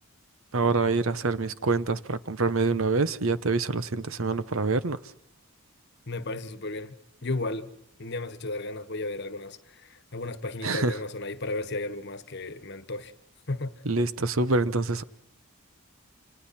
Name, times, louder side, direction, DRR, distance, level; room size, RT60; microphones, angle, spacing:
voice 1, 0.5-5.0 10.6-11.0 13.8-15.0, right 3 dB, 70° right, 1.0 m, -26 dB
voice 2, 6.1-6.9 7.2-7.7 8.0-13.1 13.5-13.8, left 2 dB, 50° left, 1.4 m, -34 dB
29.0 x 27.5 x 4.4 m
head